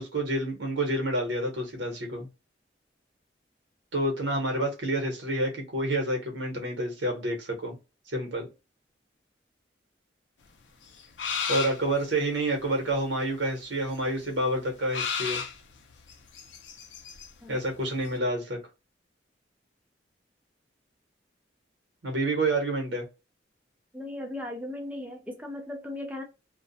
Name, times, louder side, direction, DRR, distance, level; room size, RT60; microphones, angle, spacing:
voice 1, 0.0-2.3 3.9-7.7 8.1-8.5 11.5-15.4 17.5-18.6 22.0-23.0, right 1 dB, 85° right, 1.0 m, -28 dB
sound 1, 10.9-12.0 13.9-14.0 14.2-14.3 14.9-17.3 17.7-17.8 18.0-18.1, left 6 dB, 75° left, 0.5 m, -33 dB
voice 2, 23.9-26.2, left 1 dB, 10° right, 0.4 m, -37 dB
2.3 x 2.1 x 2.6 m
head